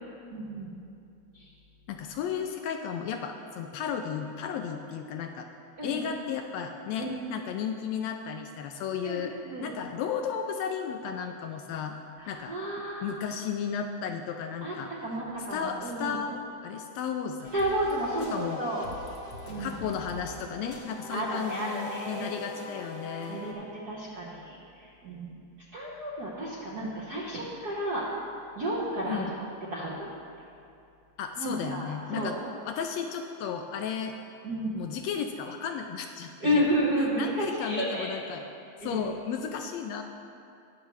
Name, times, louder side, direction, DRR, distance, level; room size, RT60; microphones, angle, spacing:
voice 1, 0.3-0.7 1.3-1.5 5.8-6.0 7.0-7.1 9.0-9.7 12.2-13.2 14.6-14.7 15.0-16.2 17.5-18.8 19.4-19.7 21.1-22.4 23.3-25.4 25.7-28.1 28.6-29.2 29.7-30.1 31.4-32.4 34.4-34.8 36.4-38.1 38.8-39.1, right 1 dB, 60° right, -6 dB, 1.0 m, -31 dB
voice 2, 1.9-5.5 5.8-9.3 9.6-12.0 12.3-12.5 13.0-14.9 15.5-17.5 18.2-18.6 19.6-23.4 29.1-29.3 31.2-32.4 32.6-34.2 34.7-36.6 37.2-38.5 38.8-40.0, left 7 dB, 80° left, 4 dB, 1.6 m, -34 dB
sound 1, 17.4-23.5, left 1 dB, 60° left, 1.2 m, -43 dB
20.0 x 6.8 x 3.1 m, 2.6 s
omnidirectional pair, 3.4 m